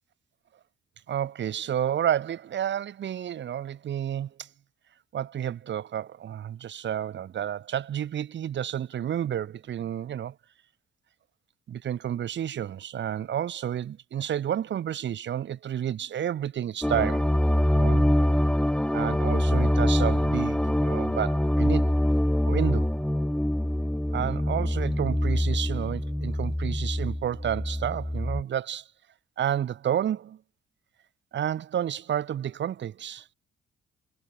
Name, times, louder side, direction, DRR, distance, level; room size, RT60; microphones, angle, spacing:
voice 1, 1.1-4.5 5.1-10.3 11.7-17.3 17.7-18.1 18.9-21.9 22.5-22.9 24.1-28.9 29.4-30.4 31.3-33.3, right 10 dB, 65° right, 6.2 m, -30 dB
sound 1, 16.8-28.4, left 1 dB, 5° left, 6.3 m, -24 dB
cardioid pair, 90°, 20 cm